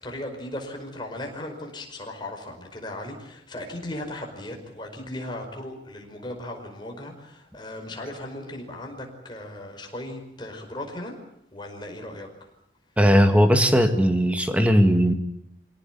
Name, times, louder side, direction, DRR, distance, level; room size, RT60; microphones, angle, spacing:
voice 1, 0.0-11.1 11.5-12.3, left 1 dB, 25° left, 2 dB, 5.1 m, -37 dB
voice 2, 13.0-15.1, equal, 5° right, 6 dB, 2.1 m, -18 dB
24.5 x 18.0 x 9.3 m, 0.74 s
head